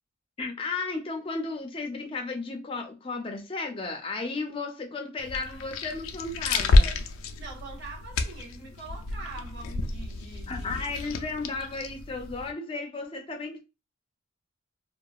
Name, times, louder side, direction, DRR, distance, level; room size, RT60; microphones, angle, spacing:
voice 1, 0.4-7.0 10.5-13.6, left 3 dB, 25° left, 0.5 m, -34 dB
sound 1, 5.2-12.5, left 2 dB, 85° left, 0.4 m, -28 dB
voice 2, 7.4-10.8, right 3 dB, 55° right, 1.1 m, -43 dB
2.7 x 2.3 x 2.3 m
head